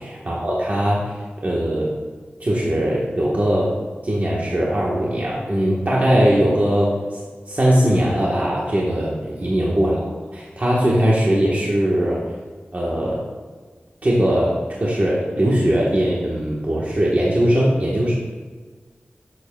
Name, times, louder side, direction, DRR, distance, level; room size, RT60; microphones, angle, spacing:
voice 1, 0.0-1.9 2.4-3.7 4.0-12.2 12.7-13.2 14.0-14.5 14.8-18.1, equal, 40° right, -5 dB, 1.2 m, -20 dB
7.9 x 7.4 x 2.2 m, 1.4 s
wide cardioid pair, 60°, 4 cm